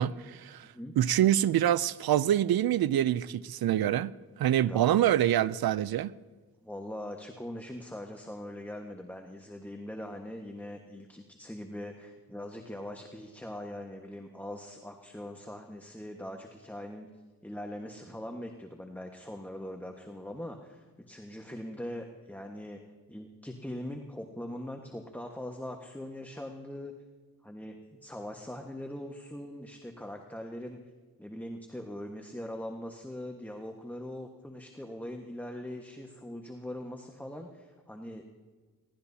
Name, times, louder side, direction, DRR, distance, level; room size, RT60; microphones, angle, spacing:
voice 1, 0.0-0.7 1.0-4.1 4.4-6.2, right 11 dB, 85° right, 0.5 m, -26 dB
voice 2, 4.7-5.0 6.6-17.1 17.4-22.8 23.1-26.9 27.4-30.8 31.2-38.3, left 1 dB, 5° left, 1.4 m, -41 dB
22.5 x 17.5 x 2.8 m
cardioid pair, 55°, 36 cm